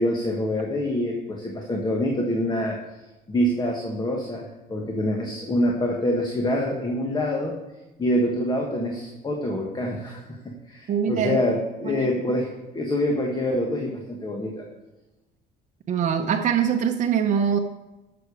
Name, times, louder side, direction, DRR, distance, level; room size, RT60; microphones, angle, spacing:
voice 1, 0.0-2.8 3.3-7.5 8.0-10.2 10.7-12.5 12.7-14.6, left 1 dB, 25° left, 1 dB, 1.6 m, -25 dB
voice 2, 10.9-11.6 11.8-12.3 15.9-17.6, right 7 dB, 45° right, 3 dB, 0.8 m, -23 dB
12.0 x 6.9 x 4.9 m, 1.0 s
cardioid pair, 110°, 17 cm